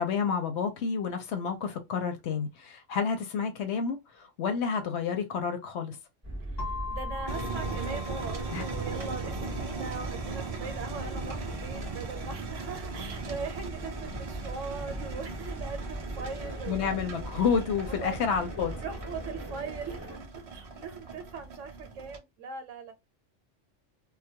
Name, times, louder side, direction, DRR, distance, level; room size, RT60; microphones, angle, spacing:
voice 1, 0.0-6.0 8.5-8.6 16.7-18.7, left 6 dB, 70° left, 0.8 m, -30 dB
sound 1, 6.2-20.2, right 1 dB, 15° right, 0.7 m, -40 dB
voice 2, 6.5-17.3 17.9-18.1 18.8-22.9, right 5 dB, 75° right, 1.0 m, -40 dB
sound 2, 6.6-14.4, left 4 dB, 45° left, 0.6 m, -43 dB
sound 3, 7.3-22.2, right 4 dB, 50° right, 0.4 m, -39 dB
2.2 x 2.1 x 2.7 m
omnidirectional pair, 1.3 m